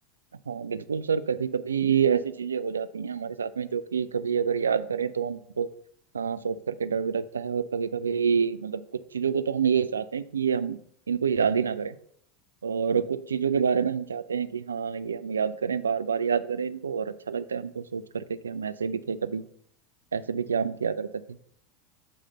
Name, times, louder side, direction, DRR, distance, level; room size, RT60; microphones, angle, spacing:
voice 1, 0.5-5.7 6.1-8.8 9.1-10.8 11.1-12.0 12.6-19.4 20.1-21.1, right 6 dB, 85° right, 14 dB, 0.3 m, -27 dB
7.4 x 3.3 x 5.6 m, 0.66 s
hypercardioid pair, 85°, 0 cm